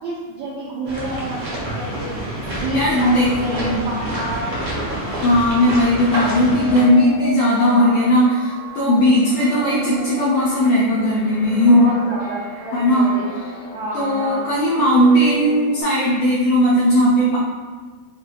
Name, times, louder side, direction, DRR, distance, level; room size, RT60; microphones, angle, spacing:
voice 1, 0.0-2.1 2.5-4.5 7.7-7.9 11.6-13.3 13.7-14.5, right 1 dB, 90° right, -9 dB, 1.7 m, -29 dB
sound 1, 0.8-6.8, right 1 dB, 75° right, 1.3 m, -28 dB
voice 2, 2.5-3.8 5.1-11.8 12.7-13.1 13.9-17.4, equal, 90° left, -6 dB, 1.7 m, -17 dB
sound 2, 2.9-15.8, left 2 dB, 45° left, 1.7 m, -35 dB
6.7 x 2.4 x 2.2 m, 1.4 s
omnidirectional pair, 4.4 m